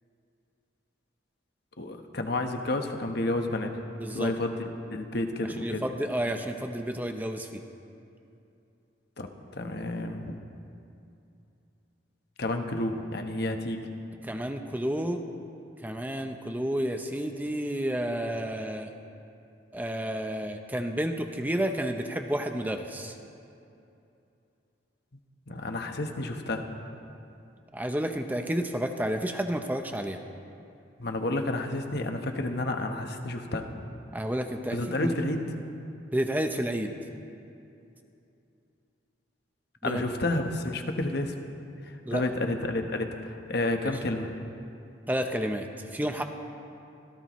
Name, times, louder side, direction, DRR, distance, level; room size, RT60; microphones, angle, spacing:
voice 1, 1.8-3.8 4.1-4.5 4.9-5.8 9.2-9.3 9.5-10.4 12.4-13.9 25.5-26.7 31.0-33.7 34.7-35.4 39.8-41.3 41.8-44.3, left 2 dB, 55° left, 5 dB, 1.1 m, -30 dB
voice 2, 3.9-4.3 5.4-7.6 14.2-15.2 15.8-18.9 19.7-23.2 27.7-30.2 34.1-35.1 36.1-36.9 39.8-40.0 42.0-42.2 43.8-44.0 45.1-45.7 45.9-46.2, right 1 dB, 10° right, 5 dB, 0.7 m, -30 dB
25.5 x 16.5 x 3.1 m, 2.7 s
head